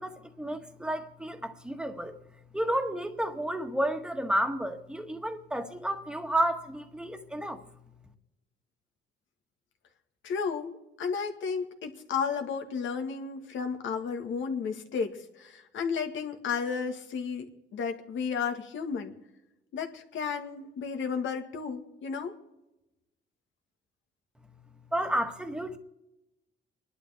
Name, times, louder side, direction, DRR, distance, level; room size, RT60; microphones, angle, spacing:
voice 1, 0.0-2.2 2.5-7.6 24.9-25.8, right 1 dB, 5° right, 1.6 m, -31 dB
voice 2, 10.2-19.1 19.7-22.4, left 6 dB, 75° left, 1.9 m, -33 dB
30.0 x 11.5 x 3.6 m
cardioid pair, 90°, 20 cm